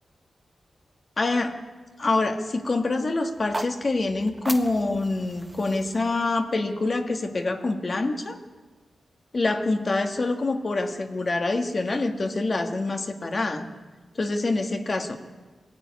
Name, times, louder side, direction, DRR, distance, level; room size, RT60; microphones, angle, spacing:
voice 1, 1.2-1.6 2.0-8.4 9.3-13.7 14.2-15.2, left 2 dB, 35° left, 6 dB, 1.8 m, -26 dB
sound 1, 3.3-7.5, right 1 dB, 15° right, 1.3 m, -39 dB
23.0 x 16.0 x 9.5 m, 1.3 s
wide cardioid pair, 170°, 0 cm